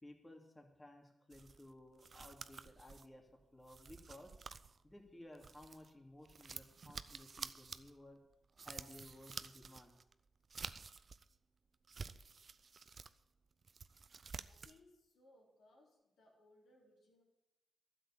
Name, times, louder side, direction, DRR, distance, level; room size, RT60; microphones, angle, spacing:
voice 1, 0.0-4.3 4.8-8.2 8.6-10.0, left 1 dB, 20° left, 1 dB, 2.6 m, -57 dB
sound 1, 1.3-5.9 6.2-11.3 11.7-13.2 13.5-14.8, right 5 dB, 55° right, 0.6 m, -51 dB
voice 2, 14.4-17.2, left 2 dB, 75° left, -3 dB, 4.0 m, -67 dB
12.0 x 7.5 x 8.8 m, 0.91 s
supercardioid pair, 40°, 0 cm